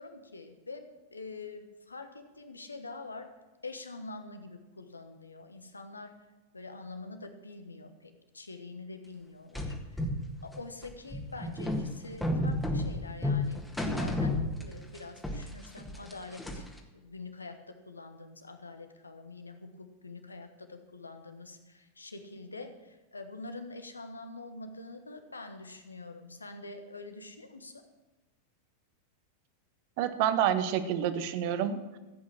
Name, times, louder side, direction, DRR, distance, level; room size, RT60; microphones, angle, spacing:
voice 1, 0.0-3.3 3.6-6.1 6.5-10.1 10.4-16.7 16.9-27.8, left 3 dB, 80° left, 7 dB, 1.3 m, -45 dB
sound 1, 9.5-15.0 15.2-16.8, left 1 dB, 5° left, 1.7 m, -32 dB
voice 2, 30.0-32.0, right 9 dB, 45° right, 11 dB, 1.0 m, -28 dB
15.0 x 8.5 x 6.4 m, 1.1 s
figure-of-eight pair, 90°, 0 cm